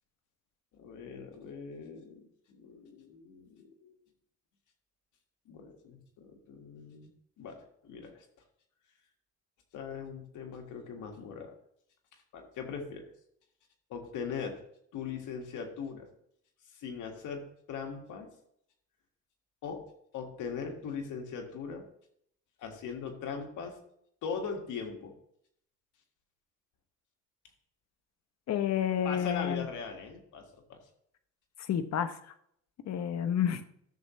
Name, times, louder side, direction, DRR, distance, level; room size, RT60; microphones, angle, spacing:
voice 1, 0.7-3.9 5.5-7.1 7.4-8.3 9.7-11.5 12.3-13.1 13.9-14.6 14.9-16.1 16.7-17.4 17.7-18.3 19.6-19.8 20.1-21.8 22.6-23.8 24.2-25.1 29.0-30.4 30.7-30.8, left 6 dB, 85° left, 3 dB, 1.9 m, -40 dB
voice 2, 28.5-29.7 31.7-32.2 32.8-33.6, left 9 dB, 60° left, 10 dB, 0.9 m, -29 dB
13.0 x 6.7 x 3.1 m, 0.70 s
cardioid pair, 90°, 30 cm